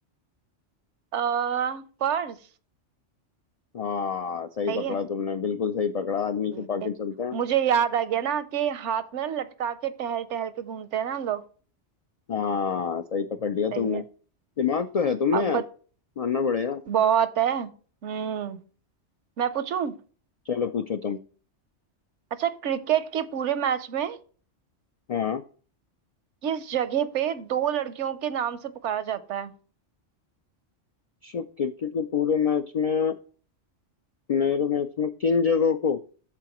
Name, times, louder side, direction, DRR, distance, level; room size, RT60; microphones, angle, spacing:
voice 1, 1.1-2.4 4.7-5.0 6.5-6.9 7.3-11.4 13.7-14.0 15.3-15.6 16.9-17.7 18.0-18.6 19.4-19.9 22.4-24.2 26.4-29.5, right 9 dB, 80° right, 1.0 m, -27 dB
voice 2, 3.7-7.4 12.3-14.0 14.6-15.6 16.2-16.8 20.5-21.2 25.1-25.4 31.2-33.1 34.3-36.0, left 6 dB, 75° left, 0.3 m, -26 dB
13.5 x 4.8 x 3.0 m
omnidirectional pair, 1.2 m